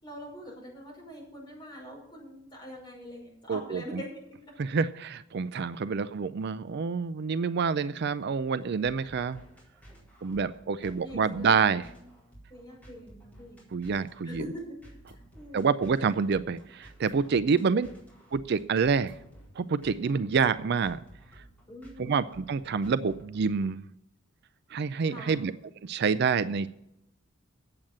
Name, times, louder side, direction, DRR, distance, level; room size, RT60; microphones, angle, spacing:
voice 1, 0.0-4.4 10.8-11.9 12.5-13.7 14.2-14.8 15.1-15.7 17.5-17.9 21.7-22.1 25.0-25.4, equal, 25° left, -3 dB, 5.6 m, -44 dB
voice 2, 3.5-4.0 4.6-9.4 10.2-11.9 13.7-14.4 15.5-17.9 18.3-19.1 19.6-21.0 22.0-23.8 24.7-25.5 25.8-26.7, right 5 dB, 55° right, 14 dB, 0.4 m, -27 dB
sound 1, 8.7-23.7, right 1 dB, 10° left, 4.4 m, -54 dB
8.9 x 7.8 x 8.6 m, 0.81 s
head